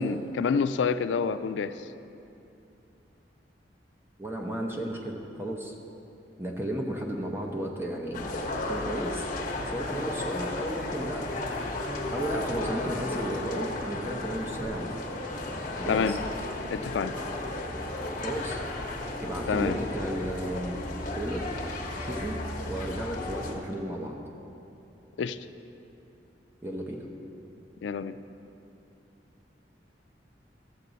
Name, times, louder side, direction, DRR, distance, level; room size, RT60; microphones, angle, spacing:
voice 1, 0.0-1.8 15.9-16.2 16.7-17.2 19.5-19.8 25.2-25.4 27.8-28.1, left 5 dB, 85° left, 12 dB, 0.4 m, -27 dB
voice 2, 4.2-5.7 6.4-8.2 8.6-9.3 9.7-11.7 12.1-15.0 15.8-16.2 18.2-18.6 19.2-21.5 22.0-22.4 22.7-24.2 26.6-27.1, right 1 dB, 15° right, 0 dB, 0.8 m, -34 dB
sound 1, 8.1-23.5, left 2 dB, 50° left, 1.2 m, -34 dB
13.5 x 7.5 x 4.0 m, 2.8 s
head